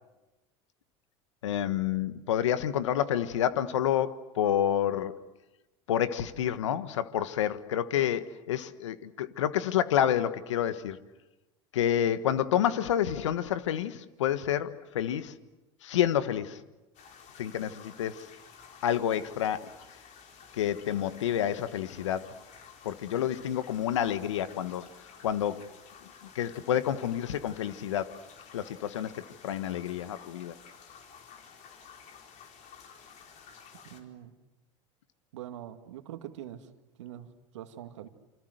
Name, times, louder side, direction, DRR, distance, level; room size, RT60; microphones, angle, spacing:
voice 1, 1.4-5.1 5.9-11.0 11.7-15.3 15.8-16.6 17.4-18.3 18.8-19.7 20.5-22.3 22.8-24.9 25.2-25.7 26.3-28.1 28.5-30.5, left 10 dB, 90° left, 1.4 m, -29 dB
sound 1, 16.9-34.0, left 6 dB, 55° left, 4.8 m, -53 dB
voice 2, 33.8-34.3 35.3-36.7 37.0-38.1, right 11 dB, 85° right, 2.2 m, -44 dB
28.5 x 26.0 x 8.0 m
hypercardioid pair, 90°, 15 cm